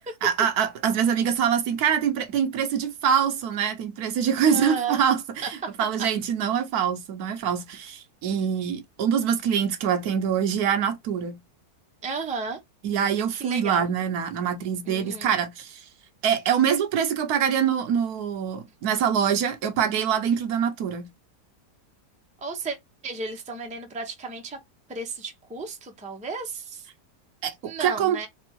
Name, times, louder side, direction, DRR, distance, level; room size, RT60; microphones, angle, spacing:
voice 1, 0.2-11.4 12.8-15.8 16.2-21.1 27.4-28.2, right 8 dB, 75° right, 1.2 m, -24 dB
voice 2, 4.5-5.0 5.4-5.5 6.0-6.1 12.0-12.6 13.4-13.9 14.9-15.3 22.4-22.8 23.0-24.6 24.9-26.9 27.6-28.3, right 4 dB, 10° right, 0.5 m, -33 dB
3.4 x 3.3 x 2.9 m
omnidirectional pair, 1.7 m